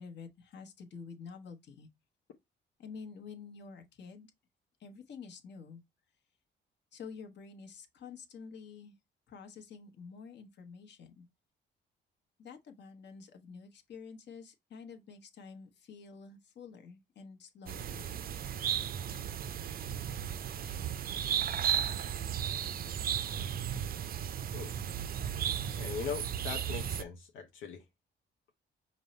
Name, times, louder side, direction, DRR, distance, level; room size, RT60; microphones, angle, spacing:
voice 1, 0.0-1.9 2.8-4.3 4.8-5.8 6.9-8.9 9.3-11.3 12.4-18.3, left 5 dB, 60° left, 1.0 m, -49 dB
sound 1, 17.7-27.0, right 9 dB, 50° right, 0.4 m, -35 dB
voice 2, 25.8-27.8, left 6 dB, 85° left, 0.7 m, -40 dB
5.2 x 2.1 x 4.0 m
cardioid pair, 90°, 20 cm